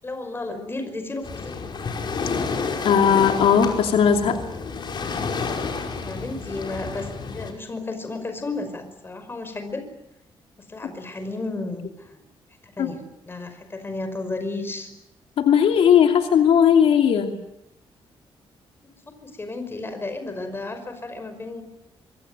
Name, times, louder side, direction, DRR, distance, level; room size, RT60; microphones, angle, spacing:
voice 1, 0.0-1.6 5.9-9.8 10.6-12.2 12.6-14.9 19.2-21.6, left 2 dB, 25° left, 8 dB, 5.4 m, -33 dB
Waves surf, 1.2-7.5, left 4 dB, 50° left, 5.4 m, -30 dB
voice 2, 2.8-4.4 12.8-12.9 15.4-17.4, left 8 dB, 80° left, 4 dB, 2.8 m, -17 dB
25.5 x 24.0 x 9.3 m, 0.84 s
cardioid pair, 120°, 10 cm